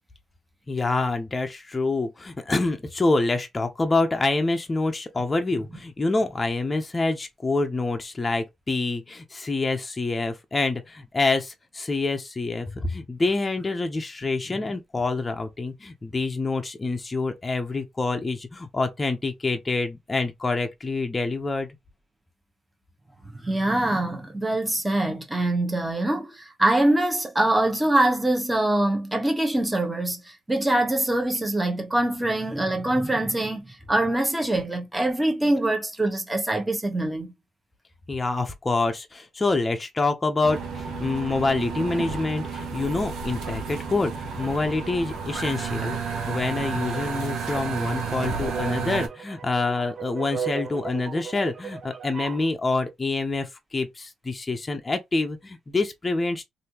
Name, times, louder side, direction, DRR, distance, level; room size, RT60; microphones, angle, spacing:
voice 1, 0.7-21.7 38.1-56.4, left 3 dB, 25° left, 0.7 m, -26 dB
voice 2, 23.3-37.3, right 1 dB, 10° right, 1.2 m, -24 dB
sound 1, 40.4-49.1, right 5 dB, 80° right, 1.0 m, -31 dB
sound 2, 46.8-52.5, right 7 dB, 45° right, 0.5 m, -36 dB
3.3 x 2.7 x 2.9 m
cardioid pair, 90°, 0 cm